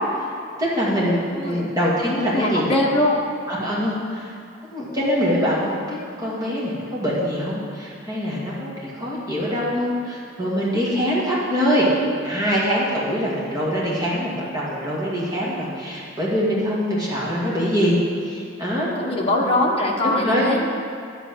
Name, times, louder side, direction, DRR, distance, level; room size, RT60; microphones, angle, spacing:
voice 1, 0.6-2.7 3.5-4.3 4.7-11.9 12.2-18.9 20.0-20.5, equal, 20° right, -7 dB, 2.3 m, -23 dB
voice 2, 2.3-3.2 19.0-20.7, left 1 dB, 30° left, -2 dB, 1.2 m, -21 dB
11.0 x 4.0 x 7.5 m, 2.4 s
head